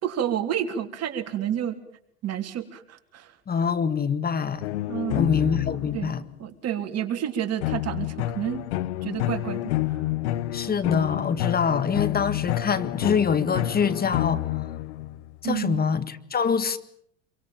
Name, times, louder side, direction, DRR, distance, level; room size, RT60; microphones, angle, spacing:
voice 1, 0.0-1.8 2.2-3.3 4.9-5.2 5.9-6.1 6.4-8.7 9.0-9.7 15.4-15.8, right 10 dB, 50° right, 3.5 m, -29 dB
voice 2, 3.5-4.6 5.2-6.2 10.5-14.6 15.4-16.8, left 6 dB, 25° left, 1.8 m, -25 dB
sound 1, 4.6-6.2 7.6-15.4, left 15 dB, 80° left, 1.0 m, -29 dB
26.5 x 24.0 x 7.3 m
hypercardioid pair, 90°, 33 cm